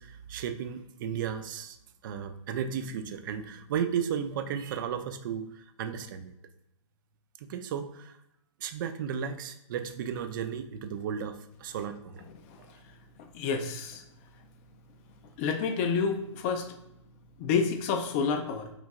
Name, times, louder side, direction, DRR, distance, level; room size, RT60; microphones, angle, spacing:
voice 1, 0.0-1.8 2.0-6.3 7.4-8.2 8.6-12.2, right 8 dB, 40° right, 8 dB, 0.4 m, -34 dB
voice 2, 13.3-14.0 15.4-16.7 17.4-18.7, left 5 dB, 25° left, 7 dB, 0.4 m, -28 dB
3.1 x 2.6 x 3.6 m, 0.83 s
hypercardioid pair, 130°, 16 cm